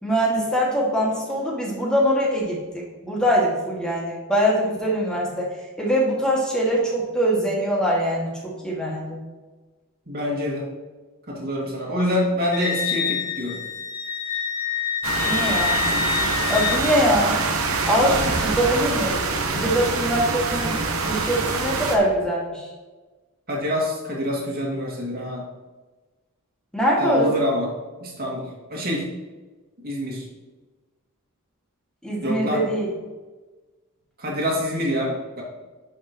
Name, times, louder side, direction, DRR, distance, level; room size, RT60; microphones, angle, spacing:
voice 1, 0.0-2.6 3.0-5.5 5.8-9.2 15.2-15.8 16.5-17.4 17.9-20.7 21.1-22.7 26.7-27.5 32.0-32.9, equal, 5° left, -4 dB, 2.2 m, -23 dB
voice 2, 10.1-10.7 11.3-13.6 23.5-25.4 27.0-27.7 28.0-29.1 29.8-30.2 32.2-32.6 34.2-35.4, left 1 dB, 45° right, -2 dB, 2.3 m, -26 dB
Wind instrument woodwind instrument, 12.5-17.0, left 7 dB, 40° left, 2.0 m, -26 dB
sound 1, 15.0-22.0, right 3 dB, 65° right, 1.1 m, -25 dB
11.0 x 5.8 x 3.1 m, 1.3 s
head